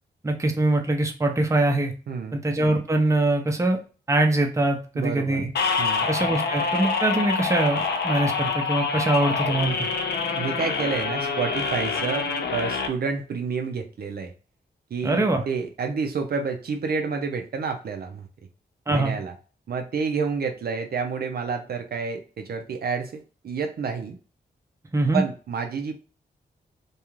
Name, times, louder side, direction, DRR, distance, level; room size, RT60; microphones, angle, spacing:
voice 1, 0.2-1.9 2.3-3.8 4.1-5.5 6.1-9.8 15.0-15.4 18.9-19.1 24.9-25.2, right 2 dB, 15° right, 4 dB, 0.6 m, -23 dB
voice 2, 2.1-2.4 4.9-5.4 5.8-6.1 10.3-14.3 14.9-18.3 18.9-19.3 19.7-24.2 25.1-25.9, right 5 dB, 60° right, 5 dB, 0.5 m, -29 dB
sound 1, 5.5-12.9, left 4 dB, 70° left, 0.5 m, -26 dB
2.4 x 2.3 x 2.9 m, 0.36 s
cardioid pair, 65°, 18 cm